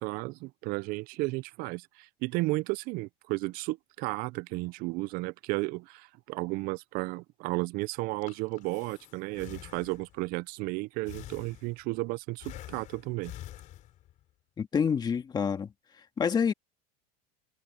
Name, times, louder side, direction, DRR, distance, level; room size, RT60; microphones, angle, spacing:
voice 1, 0.0-13.3, right 22 dB, 45° right, 0.5 m, -33 dB
Breathing, 8.0-10.3 11.1-12.0 12.4-14.2, left 13 dB, 40° left, 3.4 m, -47 dB
voice 2, 14.6-15.7 16.2-16.5, left 6 dB, 20° left, 1.9 m, -27 dB
supercardioid pair, 140°, 21 cm